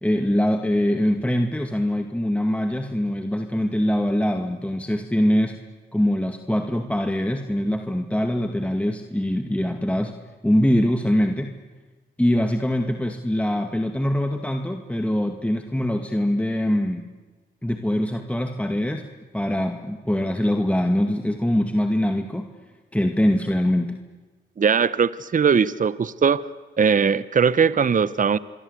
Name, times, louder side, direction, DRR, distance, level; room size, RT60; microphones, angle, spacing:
voice 1, 0.0-5.6 5.9-10.2 10.4-11.5 12.2-17.1 17.6-19.1 19.3-22.5 22.9-24.0, left 1 dB, 5° left, 5 dB, 2.2 m, -23 dB
voice 2, 24.6-26.4 26.8-28.4, right 6 dB, 40° right, 17 dB, 0.9 m, -20 dB
27.0 x 22.5 x 8.3 m, 1.3 s
supercardioid pair, 45°, 20 cm